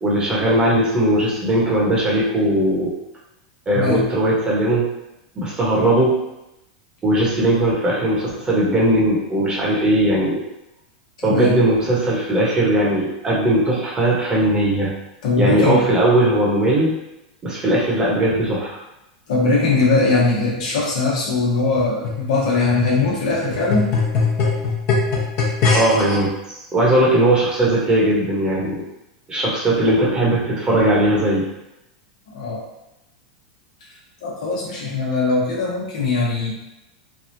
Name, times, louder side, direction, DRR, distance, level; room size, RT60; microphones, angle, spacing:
voice 1, 0.0-2.9 3.7-4.9 5.3-6.1 7.0-10.4 11.2-14.9 15.4-16.9 17.4-18.8 25.7-28.8 29.3-31.5, right 1 dB, 20° right, -5 dB, 1.1 m, -18 dB
voice 2, 11.2-11.6 15.2-15.9 19.3-23.9 32.3-32.6 34.2-36.6, left 3 dB, 75° left, -4 dB, 1.1 m, -20 dB
sound 1, 21.8-26.2 26.9-27.0, left 4 dB, 55° left, 1.0 m, -22 dB
3.3 x 2.3 x 2.7 m, 0.89 s
hypercardioid pair, 110°, 4 cm